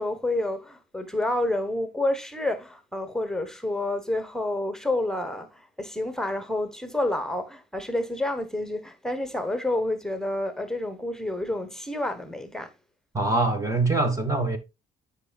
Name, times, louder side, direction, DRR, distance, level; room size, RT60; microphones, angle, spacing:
voice 1, 0.0-12.7, left 1 dB, 5° left, 1.1 m, -29 dB
voice 2, 13.1-14.6, right 2 dB, 20° right, 1.1 m, -23 dB
9.7 x 5.1 x 2.3 m
cardioid pair, 110°, 17 cm